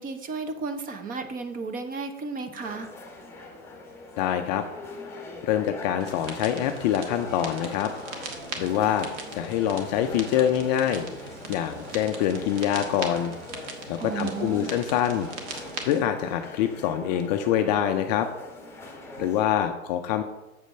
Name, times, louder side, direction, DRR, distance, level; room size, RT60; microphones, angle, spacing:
voice 1, 0.0-2.9 14.0-14.7, right 4 dB, 20° right, 8 dB, 0.7 m, -33 dB
sound 1, 2.6-19.7, left 2 dB, 5° left, 1.4 m, -42 dB
voice 2, 4.2-4.6 5.4-7.9 8.6-9.1 9.3-11.1 11.5-13.3 13.9-15.3 15.9-18.3 19.2-20.2, left 10 dB, 35° left, 7 dB, 0.4 m, -25 dB
sound 2, 6.0-16.0, right 4 dB, 45° right, 1.6 m, -40 dB
7.5 x 5.0 x 5.6 m, 1.0 s
hypercardioid pair, 115°, 41 cm